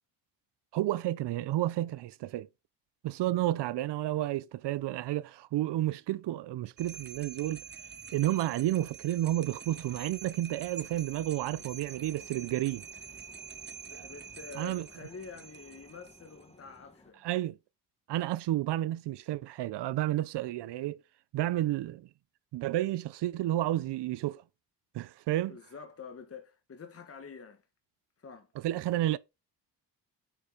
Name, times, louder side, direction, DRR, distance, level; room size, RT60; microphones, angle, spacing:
voice 1, 0.7-2.5 3.0-7.6 8.1-12.8 14.6-14.8 17.2-17.6 18.1-21.0 21.3-22.1 22.5-24.4 24.9-25.6 28.6-29.2, right 14 dB, 80° right, 0.7 m, -31 dB
sound 1, 6.8-16.5, right 7 dB, 25° right, 0.6 m, -47 dB
sound 2, 11.4-17.1, left 2 dB, 15° left, 1.8 m, -60 dB
voice 2, 13.9-17.3 25.5-27.6 28.2-28.5, left 5 dB, 35° left, 1.6 m, -47 dB
8.3 x 5.5 x 5.1 m
cardioid pair, 120°, 41 cm